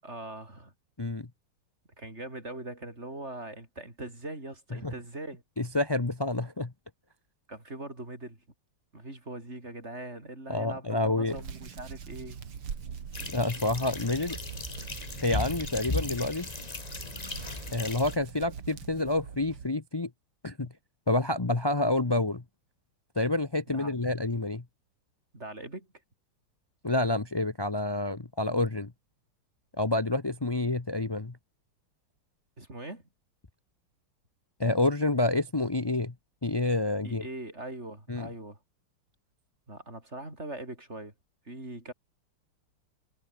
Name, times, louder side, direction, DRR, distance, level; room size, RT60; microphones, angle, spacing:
voice 1, 0.0-0.7 2.0-5.4 7.5-8.4 8.9-12.4 23.7-23.9 25.3-25.9 32.6-33.0 37.0-38.6 39.7-41.1 41.5-41.9, right 2 dB, 30° right, 6.0 m, -41 dB
voice 2, 5.6-6.7 10.5-11.4 13.3-14.4 15.2-16.5 17.7-20.1 20.4-20.7 21.1-22.4 23.2-24.6 26.8-28.9 29.8-31.4 34.6-36.1 36.4-37.2 38.1-38.3, left 2 dB, 40° left, 0.3 m, -28 dB
Hands, 11.3-19.7, right 7 dB, 80° right, 3.2 m, -43 dB
sound 1, 13.1-18.2, left 3 dB, 20° left, 1.5 m, -36 dB
omnidirectional pair, 2.4 m